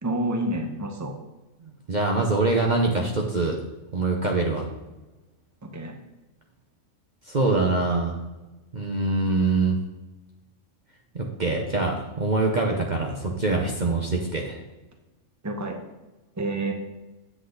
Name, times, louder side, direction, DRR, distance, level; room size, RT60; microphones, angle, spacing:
voice 1, 0.0-1.1 5.6-6.0 15.4-15.8 16.4-16.7, right 1 dB, 15° right, 4 dB, 0.9 m, -28 dB
voice 2, 1.9-3.6 3.9-4.7 7.3-8.2 8.7-9.8 11.1-14.6, right 3 dB, 40° right, 1 dB, 0.9 m, -24 dB
8.2 x 7.6 x 3.9 m, 1.1 s
omnidirectional pair, 1.3 m